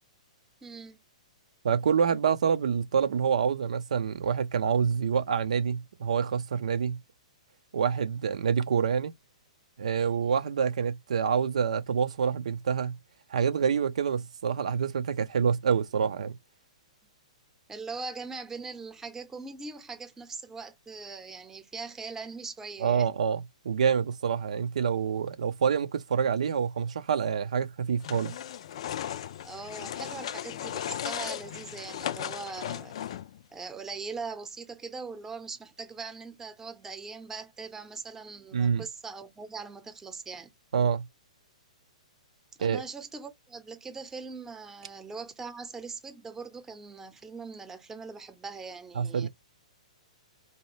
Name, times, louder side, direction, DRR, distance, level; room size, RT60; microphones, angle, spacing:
voice 1, 0.6-1.0 17.7-23.1 29.4-33.0 33.5-40.5 42.6-49.3, right 4 dB, 10° right, 0.8 m, -41 dB
voice 2, 1.6-7.0 7.7-9.1 9.8-13.0 13.3-16.4 22.8-28.3 38.5-38.8 40.7-41.0 42.6-42.8 49.0-49.3, right 7 dB, 70° right, 0.5 m, -27 dB
sound 1, 28.0-33.4, left 10 dB, 55° left, 0.4 m, -36 dB
4.2 x 2.3 x 3.1 m
figure-of-eight pair, 120°, 4 cm